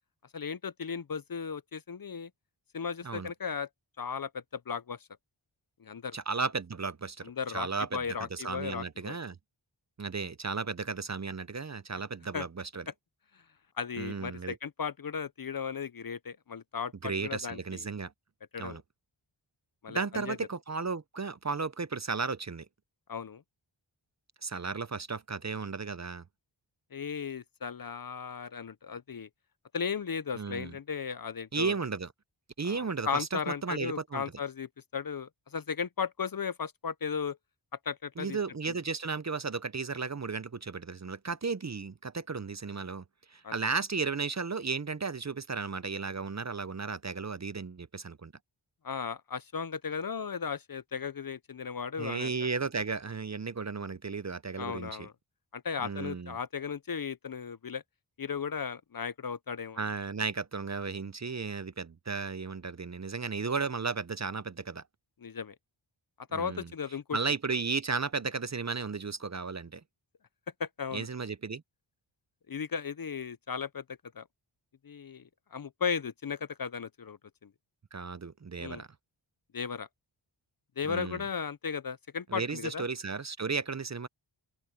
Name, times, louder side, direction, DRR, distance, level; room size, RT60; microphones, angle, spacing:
voice 1, 0.3-2.3 2.7-3.7 4.0-5.0 5.8-6.2 7.2-9.2 12.3-12.5 13.8-17.8 18.5-18.8 19.8-20.4 23.1-23.4 26.9-29.3 29.7-31.8 32.6-37.4 37.9-38.4 38.7-38.8 43.4-43.6 48.8-52.3 54.6-55.1 55.5-57.8 58.2-59.8 65.2-65.6 66.3-67.2 70.6-71.1 72.5-73.8 74.2-74.3 74.8-75.2 75.5-77.5 78.6-78.8 79.5-79.9 80.8-82.8, left 6 dB, 45° left, 0.5 m, -36 dB
voice 2, 6.1-8.0 8.3-9.4 10.0-12.8 14.0-14.6 17.0-18.1 18.6-18.8 19.9-22.7 24.4-26.2 30.4-30.7 31.5-32.1 32.6-34.2 38.2-43.0 43.3-48.3 52.0-55.1 55.8-56.3 59.8-64.8 66.3-66.7 67.1-69.8 70.9-71.6 77.9-78.9 80.8-81.2 82.3-84.1, right 4 dB, 35° right, 0.6 m, -34 dB
open air
wide cardioid pair, 45°, 49 cm